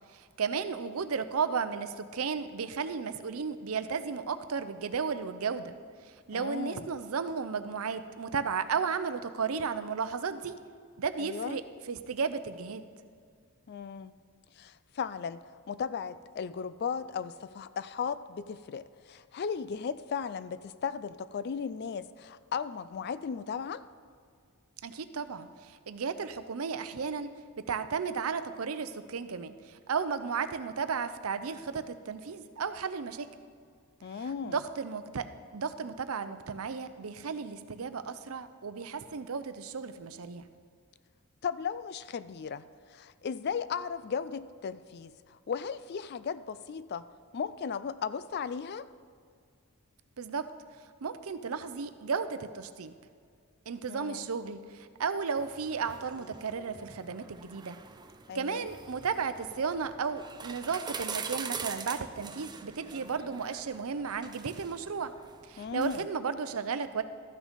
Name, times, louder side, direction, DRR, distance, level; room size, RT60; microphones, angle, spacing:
voice 1, 0.1-5.7 6.3-10.5 11.0-12.8 24.8-27.3 27.7-33.3 34.2-35.2 35.5-40.5 50.2-50.4 51.0-52.9 53.7-57.8 58.3-65.1 65.4-67.0, right 5 dB, 75° right, 11 dB, 0.6 m, -34 dB
voice 2, 6.3-6.9 11.2-11.6 13.7-14.1 14.6-15.4 15.7-23.8 34.0-34.6 41.4-47.1 47.3-48.9 53.9-54.3 58.3-58.7 65.6-66.1, left 6 dB, 50° left, 15 dB, 0.3 m, -36 dB
sound 1, 55.4-66.0, right 5 dB, 20° right, 0.4 m, -44 dB
13.5 x 6.3 x 5.1 m, 2.1 s
head